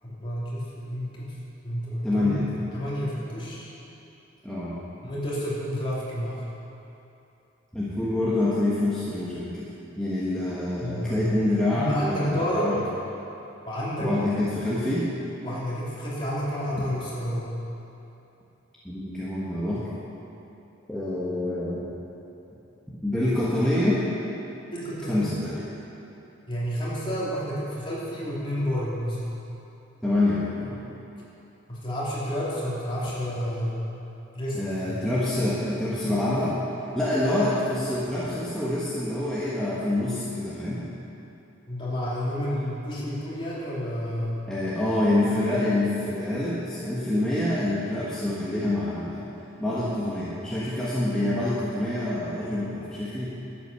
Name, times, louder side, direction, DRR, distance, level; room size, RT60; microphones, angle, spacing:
voice 1, 0.0-1.2 1.6-3.7 5.0-6.4 10.8-12.7 13.6-14.1 15.4-17.5 24.7-25.5 26.5-29.2 31.7-33.8 34.3-35.0 41.7-44.5, equal, 25° left, -8 dB, 3.2 m, -30 dB
voice 2, 2.0-2.7 4.4-4.7 7.7-9.6 10.0-12.7 14.0-15.0 16.8-16.9 18.8-19.9 20.9-21.8 23.0-24.0 25.1-25.6 30.0-30.8 34.5-36.6 36.9-40.8 44.5-49.2 49.6-53.3, left 1 dB, 5° left, -10 dB, 1.4 m, -26 dB
12.5 x 8.6 x 6.9 m, 2.9 s
head